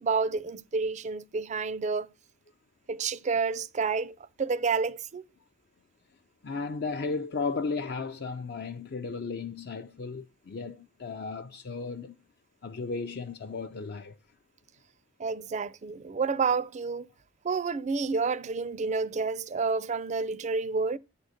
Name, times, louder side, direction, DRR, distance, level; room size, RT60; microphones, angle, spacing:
voice 1, 0.0-2.1 2.9-5.2 15.2-17.1 17.4-21.0, right 4 dB, 35° right, 0.4 m, -29 dB
voice 2, 6.4-12.2 12.6-14.2, left 4 dB, 50° left, 0.5 m, -35 dB
9.2 x 3.9 x 6.4 m
head